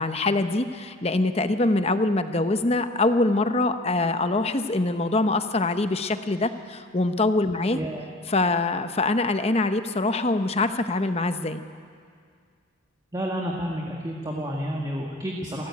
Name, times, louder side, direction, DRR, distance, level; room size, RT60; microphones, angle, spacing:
voice 1, 0.0-7.8 8.3-11.6, left 2 dB, 30° left, 9 dB, 0.9 m, -24 dB
voice 2, 13.1-15.7, equal, 20° right, -1 dB, 1.8 m, -30 dB
28.0 x 14.5 x 8.5 m, 2.1 s
head